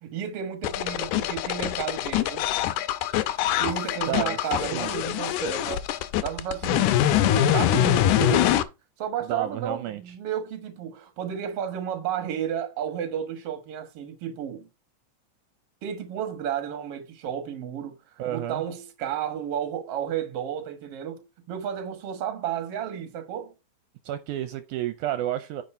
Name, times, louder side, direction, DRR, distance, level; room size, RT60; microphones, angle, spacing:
voice 1, 0.0-2.5 3.6-5.8 6.2-8.7 9.0-14.7 15.8-18.0 18.3-23.5, right 9 dB, 55° right, 2.1 m, -32 dB
sound 1, 0.6-8.6, left 12 dB, 85° left, 2.1 m, -24 dB
voice 2, 4.0-5.0 6.7-7.0 9.3-10.0 18.2-18.6 24.0-25.6, right 12 dB, 80° right, 2.0 m, -31 dB
9.4 x 4.9 x 4.4 m
omnidirectional pair, 3.6 m